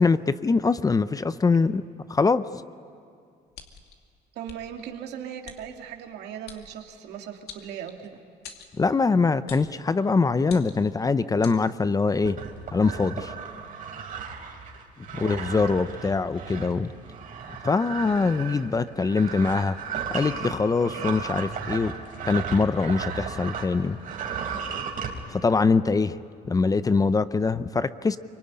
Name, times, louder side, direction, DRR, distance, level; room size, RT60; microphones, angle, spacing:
voice 1, 0.0-1.8 2.1-2.5 8.8-12.4 12.7-13.3 15.1-16.9 17.6-19.8 20.1-21.9 22.2-24.0 25.3-26.2 26.5-28.2, left 4 dB, 20° left, 14 dB, 0.6 m, -23 dB
sound 1, 3.5-3.9 4.4-4.6 5.4-5.6 6.4-6.6 7.5-8.1 8.4-8.7 9.5-9.7 10.4-10.9 11.4-11.6, left 7 dB, 70° left, 2.4 m, -44 dB
voice 2, 4.3-8.2 15.1-15.8, right 9 dB, 80° right, 3 dB, 2.4 m, -38 dB
sound 2, 12.2-23.7 24.0-25.1, right 6 dB, 50° right, 3.8 m, -35 dB
24.0 x 24.0 x 9.8 m, 2.2 s
cardioid pair, 110°, 17 cm